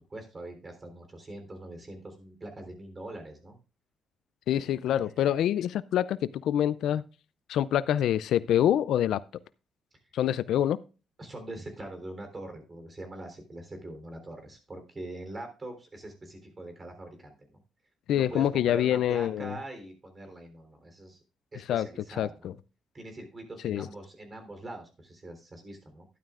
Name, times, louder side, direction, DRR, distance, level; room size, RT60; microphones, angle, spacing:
voice 1, 0.1-3.6 11.2-17.3 18.1-21.2 21.5-22.5 22.9-26.0, right 2 dB, 30° right, 3.4 m, -43 dB
voice 2, 4.5-7.0 7.5-9.2 10.1-10.8 18.1-19.6 21.7-21.9 22.2-22.5 23.6-23.9, left 11 dB, 75° left, 0.4 m, -26 dB
12.5 x 11.0 x 2.5 m
cardioid pair, 90°, 0 cm